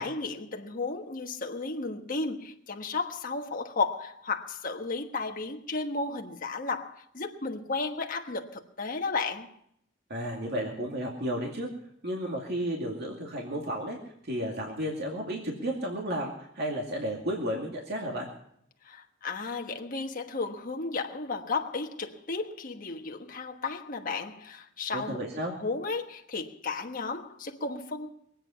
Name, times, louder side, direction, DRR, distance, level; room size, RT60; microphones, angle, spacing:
voice 1, 0.0-9.5 18.8-25.2 25.6-28.1, left 3 dB, 45° left, 1.3 m, -33 dB
voice 2, 10.1-11.7 12.0-14.0 14.2-18.3 24.9-25.5, equal, 55° right, 2.4 m, -33 dB
23.0 x 9.0 x 5.7 m
head